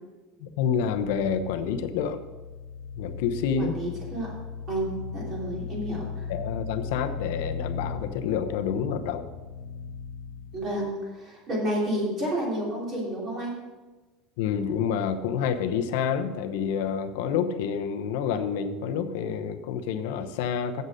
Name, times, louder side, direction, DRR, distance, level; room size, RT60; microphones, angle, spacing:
voice 1, 0.4-2.2 3.0-3.8 6.3-9.3 14.4-20.8, left 7 dB, 75° left, 8 dB, 0.8 m, -28 dB
sound 1, 0.8-10.7, left 6 dB, 50° left, 1.1 m, -37 dB
voice 2, 3.6-4.3 4.7-6.3 10.5-13.5, right 1 dB, 30° right, -3 dB, 3.1 m, -30 dB
7.9 x 7.6 x 6.4 m, 1.2 s
cardioid pair, 180°, 0 cm